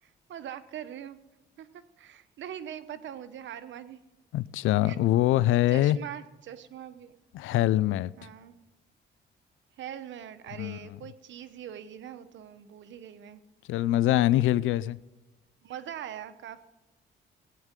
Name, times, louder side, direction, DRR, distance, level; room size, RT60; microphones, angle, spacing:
voice 1, 0.0-1.2 1.6-4.0 4.8-5.0 5.7-7.1 8.2-8.6 9.8-13.4 15.6-16.6, right 10 dB, 70° right, 1.0 m, -42 dB
voice 2, 4.3-6.0 7.3-8.1 10.6-10.8 13.7-15.0, left 14 dB, 85° left, 0.5 m, -24 dB
17.5 x 9.1 x 3.7 m
cardioid pair, 90°, 20 cm